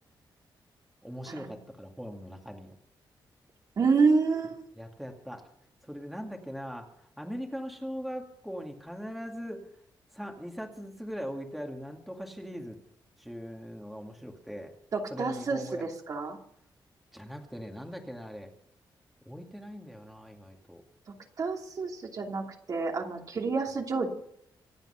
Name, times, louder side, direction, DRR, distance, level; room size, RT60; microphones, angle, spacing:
voice 1, 1.0-2.8 4.8-5.5 5.8-9.6 10.1-12.8 13.2-14.7 15.1-15.8 17.1-18.5 19.3-20.8, equal, ahead, 2 dB, 2.2 m, -40 dB
voice 2, 3.8-4.6 14.9-16.4 21.4-24.1, right 4 dB, 45° right, 2 dB, 2.8 m, -28 dB
26.0 x 9.1 x 5.8 m, 0.73 s
wide cardioid pair, 145°, 8 cm